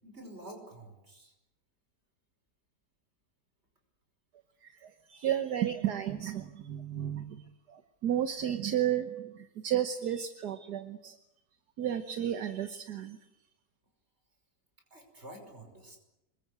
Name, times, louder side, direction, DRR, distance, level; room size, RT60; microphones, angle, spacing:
voice 1, 0.0-1.3 14.9-16.0, right 1 dB, 40° right, 4 dB, 5.7 m, -49 dB
voice 2, 4.6-11.2 11.8-13.2, right 10 dB, 70° right, 8 dB, 1.7 m, -33 dB
26.0 x 21.5 x 8.3 m, 0.90 s
omnidirectional pair, 1.8 m